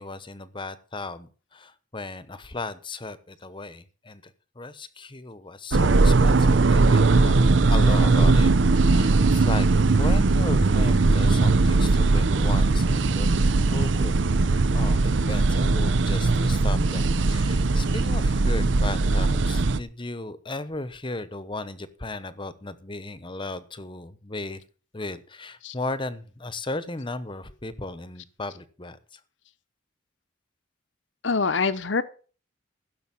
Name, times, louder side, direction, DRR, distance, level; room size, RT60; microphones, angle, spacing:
voice 1, 0.0-8.5 8.8-9.7 10.0-14.1 14.7-24.6 24.9-29.2, left 2 dB, 25° left, 1.0 m, -36 dB
sound 1, 5.7-19.8, right 3 dB, 65° right, 0.6 m, -20 dB
voice 2, 31.2-32.0, left 4 dB, 65° left, 0.9 m, -24 dB
15.5 x 6.9 x 7.1 m
head